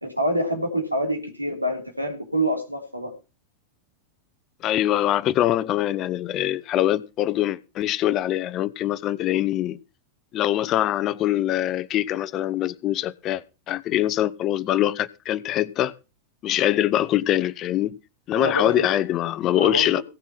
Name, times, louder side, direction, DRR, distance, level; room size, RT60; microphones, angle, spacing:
voice 1, 0.0-3.1 18.3-18.9 19.5-20.0, equal, 85° right, 3.3 m, -26 dB
voice 2, 4.6-9.8 10.3-15.9 16.4-18.0 18.3-20.0, left 13 dB, 35° left, 0.8 m, -23 dB
17.0 x 7.2 x 5.9 m
figure-of-eight pair, 90°, 0 cm